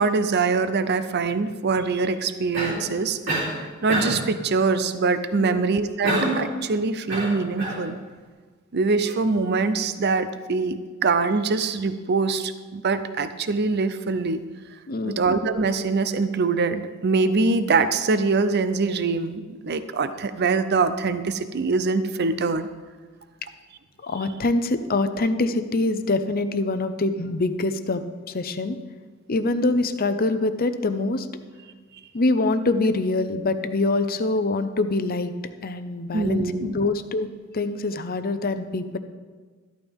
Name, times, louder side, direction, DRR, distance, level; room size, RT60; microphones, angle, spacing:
voice 1, 0.0-8.0 8.7-14.4 15.0-22.7 36.1-36.8, right 4 dB, 55° right, 11 dB, 0.6 m, -24 dB
Cough, 2.5-2.9 3.3-3.6 3.9-4.3 6.0-6.5 7.1-7.8, right 1 dB, 70° right, 3.6 m, -26 dB
voice 2, 14.9-15.2 24.0-28.0 28.3-28.8 29.3-31.3 32.1-35.3 35.6-37.3 37.5-39.0, left 2 dB, 45° left, 10 dB, 0.7 m, -24 dB
13.5 x 12.5 x 3.6 m, 1.4 s
head